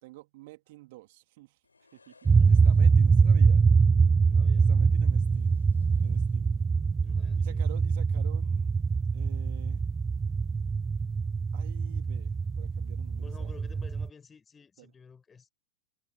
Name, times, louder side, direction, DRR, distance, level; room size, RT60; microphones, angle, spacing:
voice 1, 0.0-1.6 1.9-3.7 4.5-5.6 6.0-6.6 7.3-8.7 9.1-9.8 11.5-13.6 14.8-14.9, right 20 dB, 50° right, 3.3 m, -50 dB
sound 1, 1.6-3.3 4.9-6.8 7.1-7.3, left 4 dB, 80° left, 7.1 m, -63 dB
sound 2, 2.3-14.1, right 5 dB, 15° right, 0.4 m, -24 dB
voice 2, 4.2-4.7 7.0-7.7 13.2-15.5, left 6 dB, 15° left, 4.9 m, -52 dB
figure-of-eight pair, 90°, 0 cm